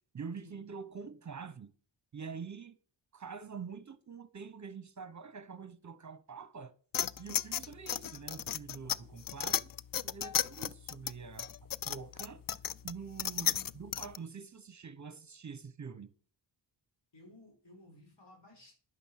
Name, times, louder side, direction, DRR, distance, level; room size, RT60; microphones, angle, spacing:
voice 1, 0.1-1.7 2.1-2.8 3.1-6.7 7.2-9.7 10.0-11.5 11.9-12.4 12.8-16.1, right 5 dB, 40° right, 0.9 m, -45 dB
sound 1, 6.9-14.2, left 9 dB, 50° left, 0.5 m, -35 dB
voice 2, 13.4-13.8 17.1-18.8, left 1 dB, 65° left, 5.9 m, -56 dB
11.0 x 8.8 x 6.5 m
wide cardioid pair, 90°, 45 cm